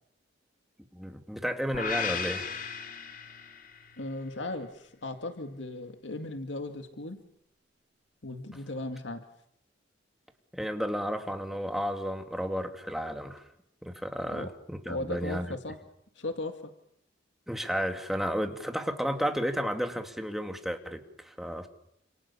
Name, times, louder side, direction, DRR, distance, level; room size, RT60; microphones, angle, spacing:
voice 1, 0.9-2.7 10.5-13.4 13.8-15.6 17.5-21.7, equal, ahead, 5 dB, 2.7 m, -32 dB
sound 1, 1.7-3.9, left 6 dB, 50° left, 3.3 m, -35 dB
voice 2, 4.0-7.2 8.2-9.2 14.3-14.5 14.9-15.8 16.2-16.7, left 2 dB, 80° left, 6 dB, 2.2 m, -37 dB
29.0 x 28.0 x 7.2 m, 0.75 s
head